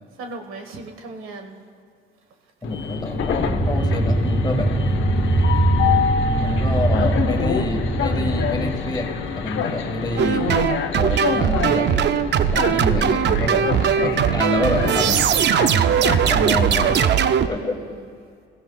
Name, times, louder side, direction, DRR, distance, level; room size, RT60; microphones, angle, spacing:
voice 1, 0.2-1.6 5.4-5.6 14.0-14.1 17.6-18.0, right 3 dB, 80° right, 4 dB, 1.3 m, -37 dB
Train, 2.6-17.1, left 7 dB, 70° left, 0.9 m, -27 dB
voice 2, 2.6-4.7 6.4-9.1 9.3-10.5 11.0-11.9 12.5-13.7 14.0-15.3 16.3-17.1 17.5-17.8, left 2 dB, 20° left, 4 dB, 1.5 m, -27 dB
sound 1, 3.1-9.6, right 1 dB, 25° right, 2.7 m, -22 dB
sound 2, 10.2-17.5, right 8 dB, 55° right, 0.5 m, -19 dB
16.5 x 15.5 x 2.3 m, 2.2 s
cardioid pair, 85°, 21 cm